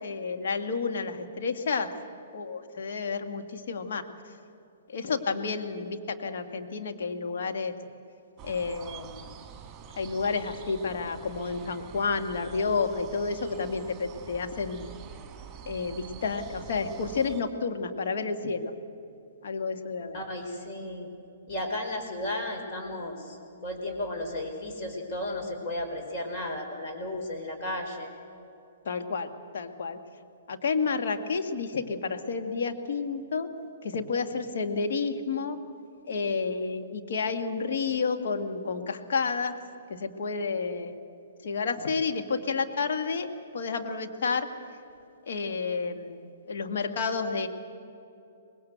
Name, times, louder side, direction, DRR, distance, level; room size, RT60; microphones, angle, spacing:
voice 1, 0.0-1.9 2.3-4.1 4.9-7.7 8.4-9.4 10.0-14.9 15.7-18.7 19.4-20.2 28.9-30.0 30.5-33.5 33.8-35.6 36.1-39.6 39.9-41.0 41.4-44.5 45.3-47.5, left 4 dB, 55° left, 5 dB, 1.8 m, -30 dB
sound 1, 8.4-17.4, right 8 dB, 20° right, 3.1 m, -46 dB
voice 2, 20.1-21.1 21.5-23.4 23.6-28.1, left 1 dB, 35° left, 2 dB, 4.9 m, -34 dB
25.0 x 20.5 x 8.0 m, 2.8 s
figure-of-eight pair, 120°, 0 cm